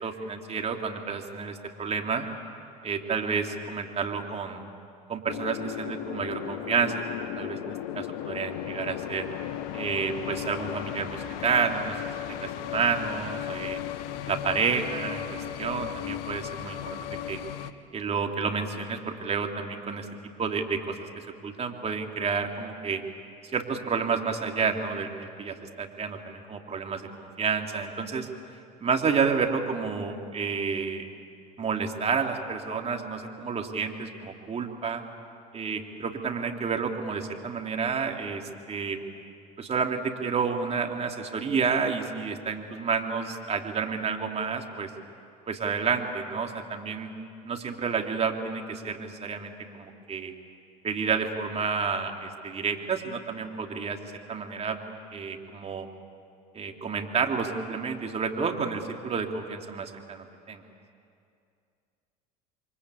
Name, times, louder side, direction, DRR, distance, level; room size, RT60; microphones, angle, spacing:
voice 1, 0.0-2.3 2.8-4.7 5.1-9.3 9.7-12.0 12.3-13.8 14.3-17.4 17.9-20.1 20.4-23.0 23.5-28.3 28.8-31.1 31.6-35.0 35.5-39.0 39.6-44.9 45.5-47.1 47.4-50.3 50.8-54.0 54.3-54.8 55.1-55.9 56.5-60.6, right 5 dB, 30° right, 3 dB, 3.3 m, -30 dB
sound 1, 5.3-17.7, left 11 dB, 70° left, 1.2 m, -35 dB
28.5 x 23.5 x 8.6 m, 2.4 s
hypercardioid pair, 75°, 21 cm